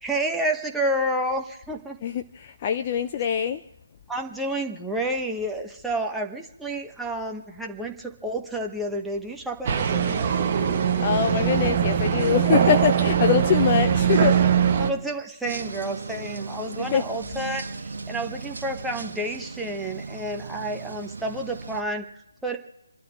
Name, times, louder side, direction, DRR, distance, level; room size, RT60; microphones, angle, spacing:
voice 1, 0.0-2.0 4.1-10.8 14.7-22.6, right 1 dB, 5° right, 1.1 m, -30 dB
voice 2, 2.0-3.6 11.0-14.3 16.9-17.0, left 8 dB, 25° left, 0.5 m, -23 dB
sound 1, 9.7-14.9, right 8 dB, 30° right, 1.1 m, -21 dB
sound 2, 15.4-21.8, right 3 dB, 50° right, 1.5 m, -37 dB
29.0 x 12.0 x 3.7 m
figure-of-eight pair, 150°, 0 cm